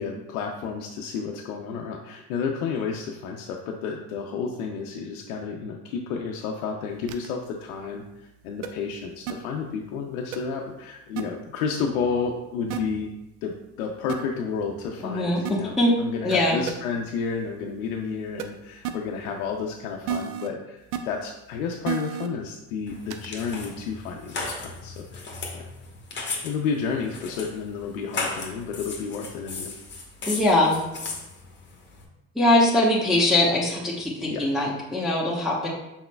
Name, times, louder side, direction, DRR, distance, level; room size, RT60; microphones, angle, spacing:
voice 1, 0.0-13.1 13.4-25.7 26.4-29.7 34.3-34.4, left 5 dB, 75° left, 1 dB, 0.6 m, -31 dB
sound 1, 7.1-7.3 8.6-8.7 9.3-9.4 10.3-10.4 11.2-11.3 12.7-12.8 14.1-14.2 15.4-15.5 16.3-16.4 16.7-16.8 18.4-18.5 18.8-18.9 20.1-20.5 20.9-21.0 21.8-22.3 23.1-23.3, right 9 dB, 80° right, 0.6 m, -30 dB
voice 2, 15.0-15.9 16.2-16.6 30.3-30.8 32.3-35.7, left 1 dB, ahead, -6 dB, 1.0 m, -22 dB
sound 2, 22.9-32.0, left 3 dB, 25° left, 1.1 m, -36 dB
5.7 x 4.2 x 2.2 m, 0.92 s
hypercardioid pair, 70°, 42 cm